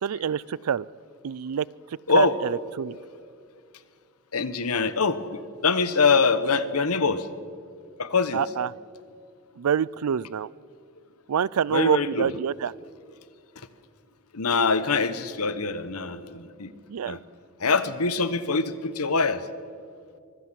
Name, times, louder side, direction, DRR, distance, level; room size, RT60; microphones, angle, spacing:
voice 1, 0.0-0.9 1.2-1.7 2.1-3.0 8.3-8.7 9.6-10.5 11.3-12.7 16.9-17.2, right 8 dB, 85° right, 24 dB, 0.4 m, -26 dB
voice 2, 4.3-5.2 5.6-7.3 8.0-8.4 11.7-12.3 14.3-16.7 17.0-17.2 17.6-19.4, left 4 dB, 85° left, 14 dB, 1.1 m, -24 dB
24.0 x 16.0 x 7.6 m, 2.2 s
head